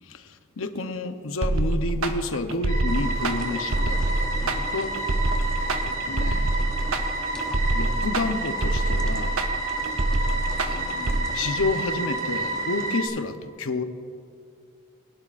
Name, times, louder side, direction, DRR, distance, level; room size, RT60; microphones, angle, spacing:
voice 1, 0.1-4.9 5.5-6.5 7.7-9.4 10.7-13.8, left 3 dB, 75° left, 8 dB, 0.8 m, -30 dB
sound 1, 1.4-11.2, right 2 dB, 85° right, 0.8 m, -25 dB
sound 2, 2.7-13.1, right 2 dB, 35° right, 2.3 m, -30 dB
sound 3, 2.9-13.0, left 1 dB, 5° left, 0.6 m, -41 dB
21.5 x 11.0 x 2.5 m, 2.4 s
head